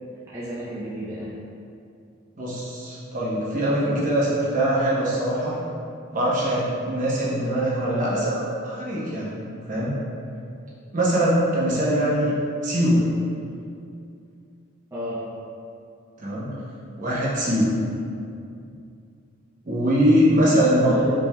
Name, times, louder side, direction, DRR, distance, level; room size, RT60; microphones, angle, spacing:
voice 1, 0.3-1.3 14.9-15.2 20.5-21.0, equal, 15° right, -11 dB, 0.5 m, -33 dB
voice 2, 2.4-5.5 6.1-10.0 10.9-12.3 12.6-13.1 16.2-16.5 17.0-17.8 19.6-21.0, equal, 40° right, -7 dB, 0.8 m, -22 dB
5.1 x 3.2 x 2.2 m, 2.5 s
head